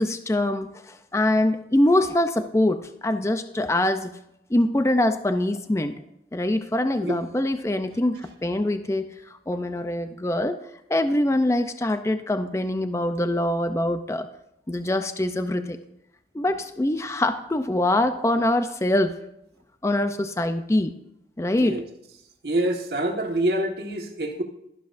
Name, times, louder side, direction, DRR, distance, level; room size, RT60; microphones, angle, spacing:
voice 1, 0.0-4.2 4.5-6.0 6.3-10.6 10.9-14.3 14.7-15.8 16.3-19.1 19.8-20.9 21.4-21.8, left 1 dB, 15° left, 9 dB, 0.4 m, -24 dB
voice 2, 22.4-24.4, right 1 dB, 65° right, 3 dB, 1.5 m, -26 dB
12.5 x 11.5 x 2.6 m, 0.80 s
head